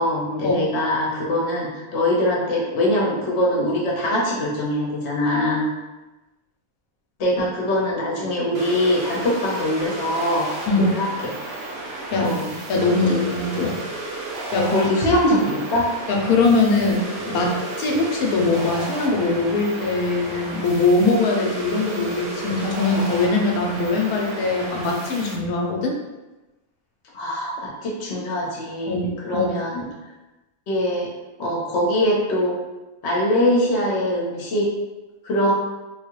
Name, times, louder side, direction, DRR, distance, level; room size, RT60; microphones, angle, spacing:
voice 1, 0.0-5.7 7.2-10.5 10.8-11.3 12.2-12.5 13.0-13.1 14.5-15.9 27.1-29.8 30.7-31.1 31.4-32.5 33.0-34.7 35.2-35.5, left 1 dB, 55° left, -3 dB, 1.0 m, -22 dB
sound 1, 8.5-25.3, right 2 dB, 55° right, 0.7 m, -33 dB
voice 2, 12.7-13.8 14.5-14.9 16.1-26.0 28.9-29.5, left 3 dB, 90° left, 0 dB, 1.1 m, -21 dB
3.8 x 2.3 x 3.0 m, 1.1 s
omnidirectional pair, 1.5 m